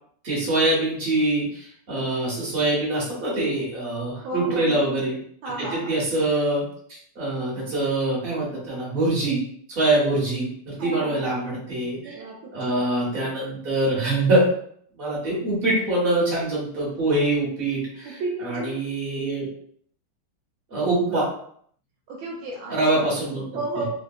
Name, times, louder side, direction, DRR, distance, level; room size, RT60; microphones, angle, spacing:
voice 1, 0.2-5.2 5.7-6.6 7.1-9.4 9.7-12.1 12.5-14.5 15.0-19.4 20.7-21.3 22.7-23.5, right 2 dB, 30° right, -6 dB, 1.3 m, -24 dB
voice 2, 4.2-4.7 5.4-6.0 10.8-11.3 12.0-13.0 18.0-18.8 22.1-23.0 23.5-23.9, right 2 dB, 75° right, -2 dB, 1.3 m, -33 dB
3.6 x 2.5 x 2.3 m, 0.62 s
omnidirectional pair, 2.3 m